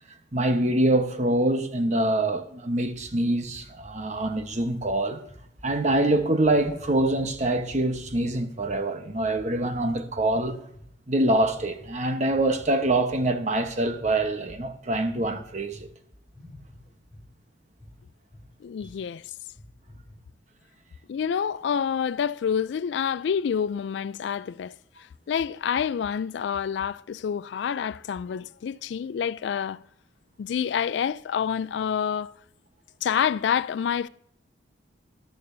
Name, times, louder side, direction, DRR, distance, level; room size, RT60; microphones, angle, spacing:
voice 1, 0.3-5.2 5.6-10.6 11.1-15.9 29.5-29.6, right 1 dB, 40° right, 1.0 m, -25 dB
sound 1, 2.9-8.8 9.1-10.9 11.3-11.9 12.3-15.9 16.1-17.3 17.8-17.9 18.3-18.5 18.8-18.9 19.4-20.2, left 1 dB, ahead, 3.7 m, -48 dB
voice 2, 18.6-19.2 21.1-24.7 25.3-29.8 30.4-32.4 33.0-34.1, left 7 dB, 70° left, 0.3 m, -27 dB
13.5 x 12.0 x 2.7 m
head